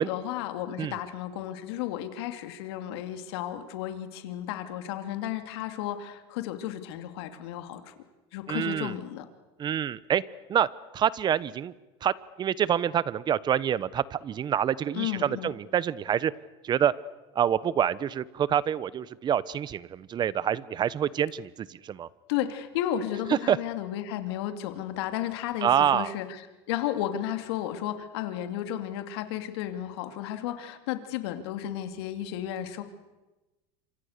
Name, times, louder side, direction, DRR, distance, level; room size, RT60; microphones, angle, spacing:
voice 1, 0.0-7.9 8.3-9.3 14.9-15.5 22.3-26.4 26.7-32.8, left 11 dB, 75° left, 8 dB, 2.8 m, -33 dB
voice 2, 8.5-8.9 9.6-10.2 10.5-10.7 10.9-11.7 12.0-12.1 12.4-16.3 16.6-16.9 17.3-22.1 23.3-23.6 25.6-26.1, right 9 dB, 35° right, 19 dB, 1.0 m, -26 dB
28.0 x 25.5 x 6.8 m, 1.1 s
supercardioid pair, 115°, 13 cm